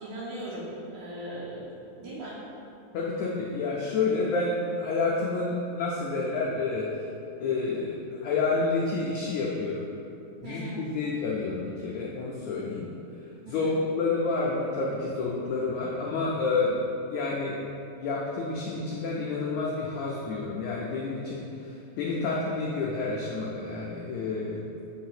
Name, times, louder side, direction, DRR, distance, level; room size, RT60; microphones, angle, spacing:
voice 1, 0.0-1.7 1.9-2.4 10.4-10.8 13.5-13.8, right 1 dB, 70° right, -7 dB, 2.0 m, -38 dB
voice 2, 2.9-6.9 7.4-9.9 10.4-12.9 13.5-16.8 17.1-17.6 18.0-21.4 22.0-24.6, left 3 dB, 85° left, -4 dB, 1.6 m, -29 dB
7.5 x 2.8 x 5.7 m, 2.8 s
omnidirectional pair, 4.0 m